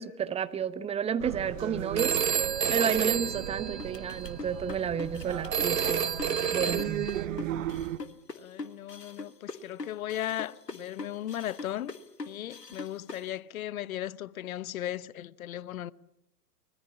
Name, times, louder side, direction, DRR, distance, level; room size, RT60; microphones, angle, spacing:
voice 1, 0.0-6.1 6.5-7.1, right 7 dB, 15° right, 1.0 m, -32 dB
sound 1, 1.2-8.0, right 12 dB, 55° right, 1.4 m, -36 dB
Telephone, 2.0-4.3 5.5-7.2, right 7 dB, 85° right, 1.2 m, -29 dB
sound 2, 3.8-13.3, left 3 dB, 90° left, 1.7 m, -41 dB
voice 2, 6.4-6.8 8.3-11.9 12.2-15.9, left 12 dB, 60° left, 0.9 m, -37 dB
24.5 x 20.0 x 8.6 m
figure-of-eight pair, 105°, 48 cm